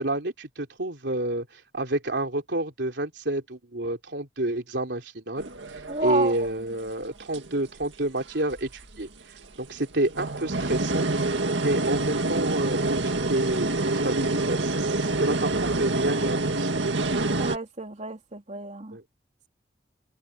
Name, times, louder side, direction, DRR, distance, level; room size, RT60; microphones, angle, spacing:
voice 1, 0.0-9.1 9.6-11.1 11.6-16.8 18.9-19.0, right 1 dB, 70° right, 3.6 m, -29 dB
sound 1, 5.4-6.7 7.3-7.8 8.5-9.1 9.7-17.6, right 2 dB, 90° right, 2.0 m, -27 dB
voice 2, 5.9-6.3 17.4-19.0, right 2 dB, 40° right, 3.0 m, -30 dB
open air
head